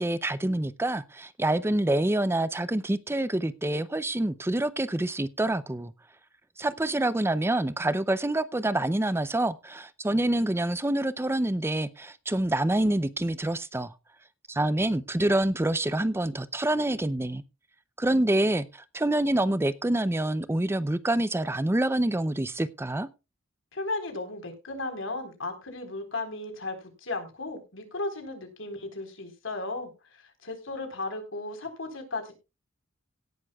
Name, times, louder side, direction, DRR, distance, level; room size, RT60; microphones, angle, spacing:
voice 1, 0.0-5.9 6.6-13.9 14.5-17.4 18.0-23.1, right 1 dB, 10° right, 0.5 m, -26 dB
voice 2, 23.7-29.9 30.4-32.3, left 2 dB, 70° left, 4.0 m, -35 dB
17.5 x 11.0 x 2.3 m
head